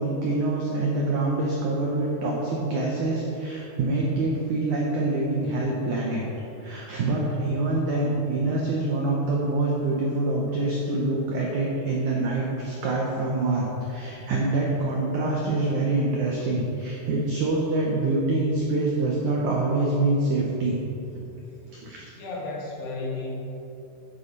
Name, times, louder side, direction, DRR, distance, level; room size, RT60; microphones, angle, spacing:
voice 1, 0.0-6.3 6.6-20.8 21.1-21.3 21.7-22.0, right 2 dB, 80° right, -2 dB, 1.7 m, -25 dB
voice 2, 22.2-23.3, left 3 dB, 75° left, -3 dB, 3.7 m, -33 dB
10.5 x 6.9 x 5.3 m, 2.9 s
omnidirectional pair, 4.9 m